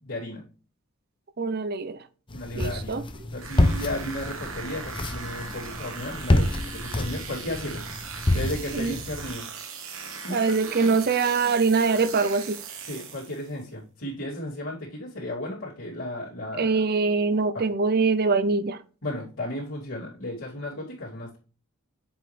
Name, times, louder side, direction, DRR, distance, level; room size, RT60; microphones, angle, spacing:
voice 1, 0.0-0.4 2.3-7.8 8.1-9.5 10.2-10.9 12.9-16.7 17.5-17.6 19.0-21.4, left 1 dB, 70° left, 2.9 m, -34 dB
voice 2, 1.4-2.0 2.5-3.0 8.7-8.9 10.3-12.6 16.6-18.8, right 4 dB, 45° right, 0.6 m, -23 dB
sound 1, 2.3-9.3, left 1 dB, 25° left, 0.6 m, -28 dB
sound 2, 3.4-13.5, right 5 dB, 65° right, 1.6 m, -39 dB
7.5 x 4.9 x 3.3 m
head